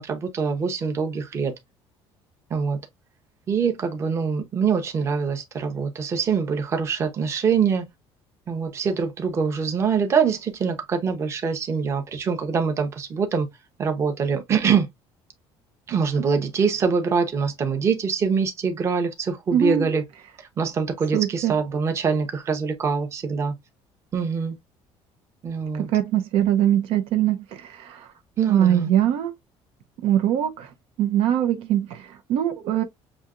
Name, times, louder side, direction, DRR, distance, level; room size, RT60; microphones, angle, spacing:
voice 1, 0.0-1.5 2.5-2.8 3.5-7.8 8.5-13.5 13.8-14.9 15.9-20.0 20.6-23.5 24.1-24.5 25.4-25.9 28.4-28.9, right 6 dB, 25° right, 0.8 m, -24 dB
voice 2, 19.5-19.9 21.1-21.5 25.9-28.1 28.5-29.3 30.0-30.7 31.0-32.8, right 11 dB, 65° right, 0.7 m, -22 dB
7.1 x 2.8 x 2.4 m
cardioid pair, 175°, 10 cm